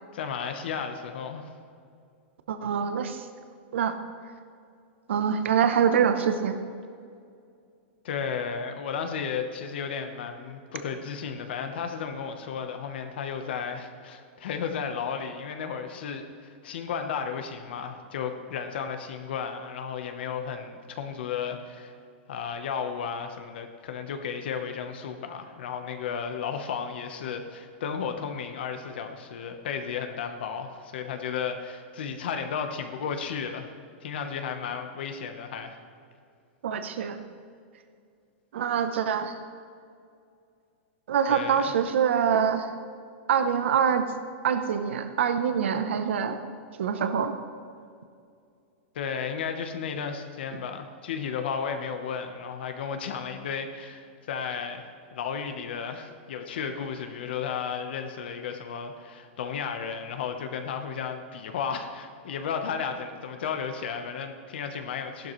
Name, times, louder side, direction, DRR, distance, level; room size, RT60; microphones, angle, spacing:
voice 1, 0.1-1.5 8.0-21.9 22.3-33.7 34.0-35.8 41.3-41.7 48.9-65.3, left 6 dB, 60° left, 6 dB, 1.0 m, -33 dB
voice 2, 2.5-3.3 3.7-4.0 5.1-6.6 36.6-37.2 38.5-39.3 41.1-42.7 43.3-44.0 44.4-46.4 46.8-47.3 50.5-50.6, right 7 dB, 80° right, 8 dB, 0.8 m, -25 dB
15.0 x 12.0 x 3.2 m, 2.4 s
supercardioid pair, 175°, 6 cm